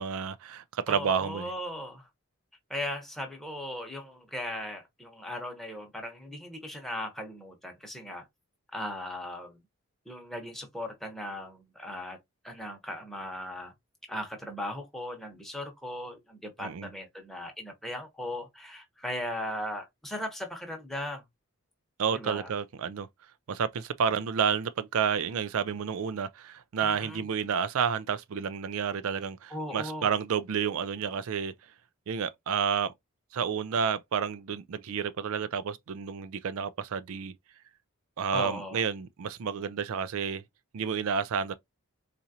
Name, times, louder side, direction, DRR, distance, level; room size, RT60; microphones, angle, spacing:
voice 1, 0.0-1.5 16.6-16.9 22.0-23.1 23.5-31.5 32.1-32.9 33.3-37.3 38.2-40.4 40.7-41.5, right 7 dB, 75° right, 0.4 m, -30 dB
voice 2, 0.9-2.1 2.7-8.2 8.7-9.6 10.1-12.2 12.4-13.7 14.1-21.2 22.1-22.5 26.8-27.2 29.5-30.1 38.3-38.8, left 1 dB, ahead, 0.9 m, -38 dB
4.2 x 2.4 x 2.8 m
head